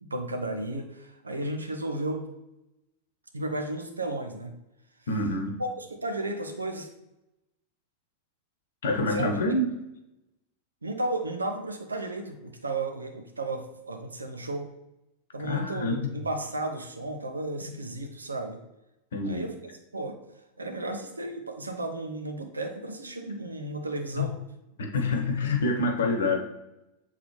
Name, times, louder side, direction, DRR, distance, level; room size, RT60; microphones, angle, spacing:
voice 1, 0.0-2.3 3.3-4.5 5.6-6.9 9.1-9.5 10.8-14.7 15.3-18.6 19.2-19.5 19.9-20.2 20.6-24.4, right 2 dB, 80° right, 5 dB, 0.8 m, -33 dB
voice 2, 5.1-5.5 8.8-9.7 15.4-16.1 19.1-19.5 24.1-24.3 24.8-26.4, left 2 dB, 60° left, 3 dB, 1.0 m, -27 dB
7.9 x 3.7 x 3.3 m, 0.91 s
figure-of-eight pair, 90°, 0 cm